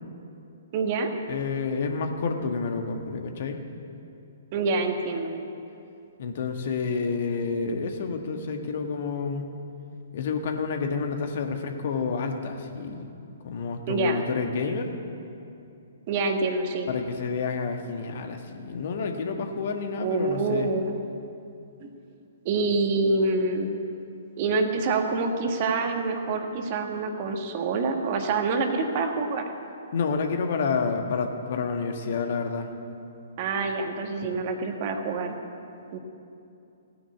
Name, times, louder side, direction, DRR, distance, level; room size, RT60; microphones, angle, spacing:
voice 1, 0.7-1.1 4.5-5.3 13.9-14.2 16.1-16.9 20.0-20.9 21.8-21.9 22.4-23.7 24.4-29.4 33.4-35.4 35.9-36.0, right 3 dB, 40° right, 4 dB, 1.7 m, -26 dB
voice 2, 1.3-3.6 6.2-9.5 10.1-13.1 13.4-14.9 16.9-20.7 29.9-32.7, left 5 dB, 50° left, 5 dB, 1.5 m, -29 dB
17.0 x 9.8 x 8.5 m, 2.7 s
figure-of-eight pair, 120°, 0 cm